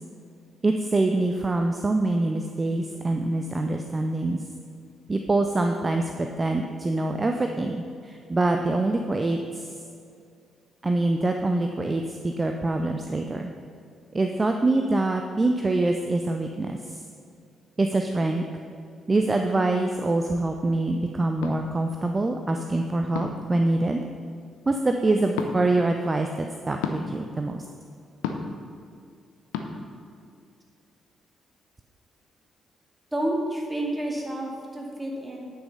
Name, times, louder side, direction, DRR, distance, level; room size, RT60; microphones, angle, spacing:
voice 1, 0.6-4.4 5.1-9.7 10.8-13.5 14.1-17.0 17.8-18.4 19.1-24.0 24.7-27.6, right 2 dB, 25° right, 4 dB, 0.6 m, -25 dB
sound 1, 21.4-21.6 23.1-23.5 25.3-25.5 26.8-27.0 28.2-28.6 29.5-29.7, left 7 dB, 70° left, 0.6 m, -30 dB
voice 2, 33.1-35.5, right 1 dB, 5° right, -2 dB, 2.2 m, -29 dB
9.8 x 5.9 x 5.6 m, 2.4 s
figure-of-eight pair, 40°, 0 cm